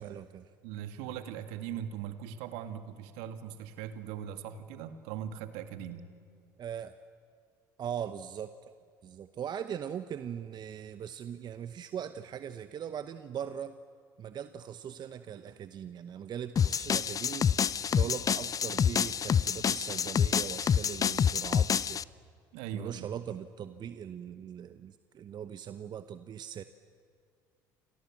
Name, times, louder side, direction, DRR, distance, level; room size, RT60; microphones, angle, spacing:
voice 1, 0.0-0.4 6.6-6.9 7.8-8.7 9.0-13.8 14.2-17.5 17.9-22.0 22.7-26.6, right 9 dB, 45° right, 11 dB, 1.0 m, -40 dB
voice 2, 0.6-6.1 18.0-18.2 22.5-23.1, right 9 dB, 70° right, 8 dB, 2.1 m, -40 dB
sound 1, 16.6-22.0, left 8 dB, 35° left, 0.6 m, -27 dB
29.5 x 26.5 x 7.6 m, 2.2 s
hypercardioid pair, 60°, 10 cm